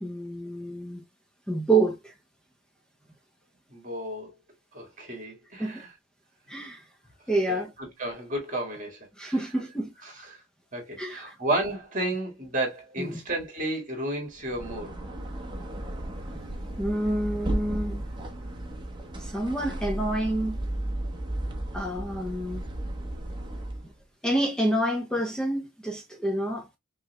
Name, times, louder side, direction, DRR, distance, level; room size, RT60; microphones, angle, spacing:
voice 1, 0.0-1.0 1.5-2.1 5.6-5.8 6.5-6.9 7.3-7.7 9.2-9.9 11.0-11.4 13.0-13.2 16.8-18.0 19.2-20.6 21.7-22.7 24.2-26.7, right 2 dB, 5° left, 0.6 m, -28 dB
voice 2, 3.7-4.3 4.7-5.9 7.5-7.6 8.0-9.3 10.3-10.4 10.7-15.0, right 1 dB, 45° right, 2.0 m, -32 dB
sound 1, 14.4-23.9, right 1 dB, 25° right, 0.9 m, -34 dB
5.5 x 3.0 x 2.2 m
head